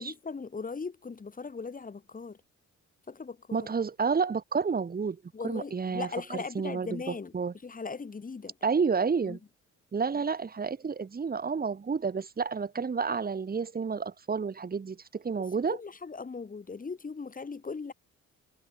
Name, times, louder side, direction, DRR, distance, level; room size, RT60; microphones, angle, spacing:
voice 1, 0.0-2.4 3.1-3.7 5.3-7.3 7.6-8.5 9.3-9.4 15.7-17.9, left 4 dB, 30° left, 2.3 m, -39 dB
voice 2, 3.5-7.5 8.6-9.4 9.9-15.8, right 5 dB, 30° right, 1.6 m, -30 dB
cardioid pair, 90°, 30 cm